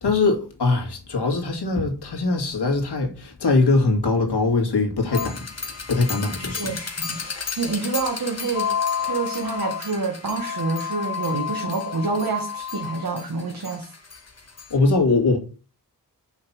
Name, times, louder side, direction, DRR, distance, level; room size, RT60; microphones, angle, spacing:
voice 1, 0.0-5.4 5.9-6.7 14.7-15.4, left 3 dB, 85° left, 2.3 m, -21 dB
sound 1, 5.1-14.7, left 6 dB, 40° left, 1.6 m, -31 dB
voice 2, 6.4-7.2 7.6-8.7 9.0-13.9, right 4 dB, 60° right, 1.8 m, -27 dB
5.8 x 5.7 x 6.2 m
cardioid pair, 55°, 39 cm